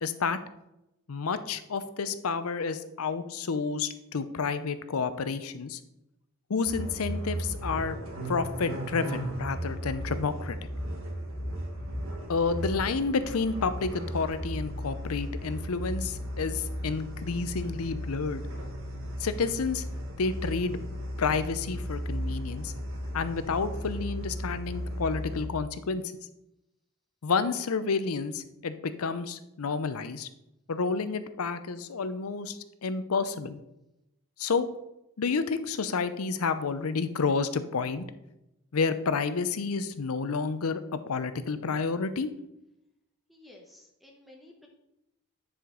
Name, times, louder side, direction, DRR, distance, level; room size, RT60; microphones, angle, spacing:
voice 1, 0.0-0.4 1.1-5.8 6.5-8.0 8.3-10.6 12.3-18.4 19.2-19.8 20.2-20.8 21.2-22.7 23.1-26.0 27.2-30.3 30.7-33.6 34.4-34.7 35.2-38.0 38.7-42.3, left 4 dB, 85° left, 12 dB, 0.6 m, -30 dB
sound 1, 6.6-25.5, equal, 70° right, 1.5 m, -35 dB
voice 2, 43.3-44.7, left 1 dB, ahead, 0 dB, 0.9 m, -53 dB
9.6 x 5.0 x 3.8 m, 0.88 s
head